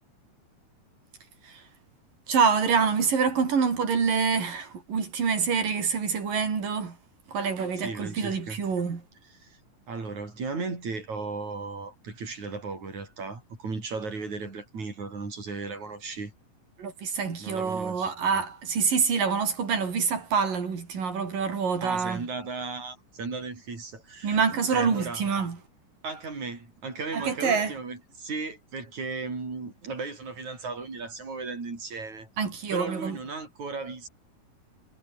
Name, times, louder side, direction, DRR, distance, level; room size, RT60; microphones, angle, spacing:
voice 1, 2.3-7.0 7.3-9.0 16.8-22.3 24.2-25.6 27.1-27.7 32.4-33.2, right 5 dB, 70° right, 6.0 m, -26 dB
voice 2, 7.8-8.6 9.4-9.6 9.9-16.3 17.4-18.1 21.8-24.4 24.7-25.2 26.0-32.3 32.7-34.1, right 4 dB, 55° right, 7.6 m, -36 dB
omnidirectional pair, 4.0 m